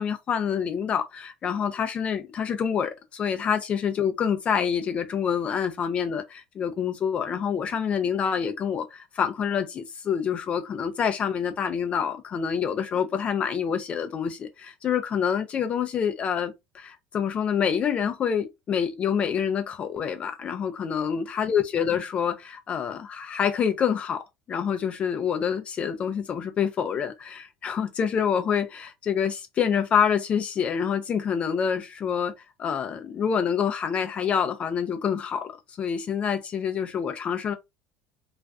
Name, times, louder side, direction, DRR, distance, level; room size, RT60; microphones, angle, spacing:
voice 1, 0.0-32.3 32.6-37.5, left 7 dB, 40° left, 0.4 m, -27 dB
2.4 x 2.3 x 2.3 m
hypercardioid pair, 85°, 3 cm